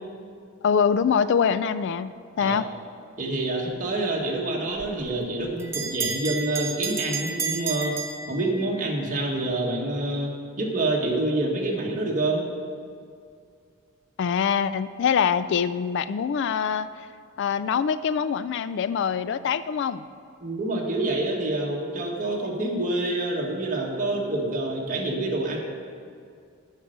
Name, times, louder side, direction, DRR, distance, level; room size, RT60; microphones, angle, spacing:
voice 1, 0.6-2.7 14.2-16.9 17.4-20.0, left 7 dB, 55° left, 14 dB, 0.3 m, -24 dB
voice 2, 3.2-7.9 8.3-10.3 10.6-12.5 20.4-25.6, right 2 dB, 40° right, -1 dB, 1.7 m, -27 dB
Bell, 4.8-8.9, right 5 dB, 10° right, 0.6 m, -32 dB
8.8 x 6.5 x 7.8 m, 2.3 s
head